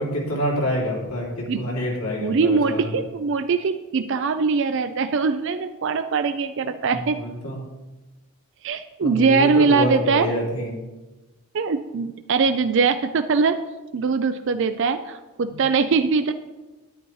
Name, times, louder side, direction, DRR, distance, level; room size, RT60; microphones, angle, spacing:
voice 1, 0.0-2.9 6.9-7.6 9.0-10.7 15.5-15.6, equal, 80° left, -3 dB, 2.9 m, -27 dB
voice 2, 1.5-1.8 2.2-7.2 8.6-10.3 11.5-13.6 13.9-16.3, right 5 dB, 55° right, 9 dB, 0.4 m, -22 dB
10.5 x 10.0 x 3.1 m, 1.1 s
head